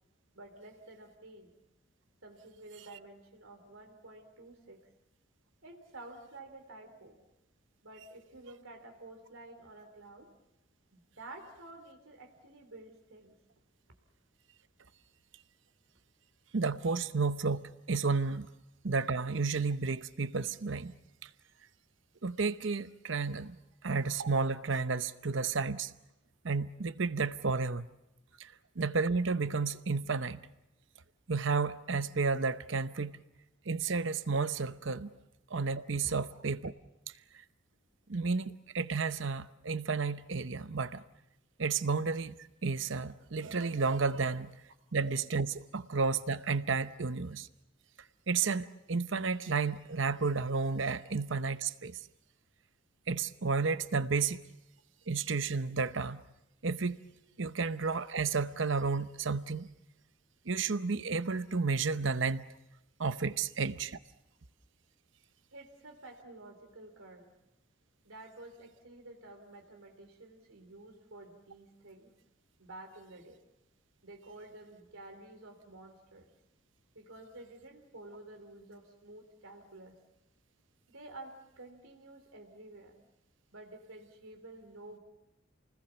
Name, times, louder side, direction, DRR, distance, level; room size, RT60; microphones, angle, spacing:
voice 1, 0.3-1.5 2.2-4.8 5.6-7.2 7.8-10.3 10.9-13.4 28.3-28.4 36.0-36.1 65.5-67.3 68.0-72.1 72.6-73.4 74.0-76.3 76.9-80.0 80.9-83.0 83.5-85.0, right 2 dB, 85° right, 3.3 m, -51 dB
voice 2, 16.5-18.5 18.8-20.9 21.2-21.3 22.2-23.6 23.8-25.9 26.4-27.9 28.4-30.4 31.3-33.2 33.7-35.1 35.5-36.7 38.1-41.0 41.6-44.5 44.9-47.5 48.3-52.0 53.1-54.4 55.1-56.2 56.6-57.0 57.4-59.7 60.5-62.5 63.0-64.0, right 4 dB, 65° right, 0.8 m, -32 dB
28.5 x 20.0 x 7.0 m
head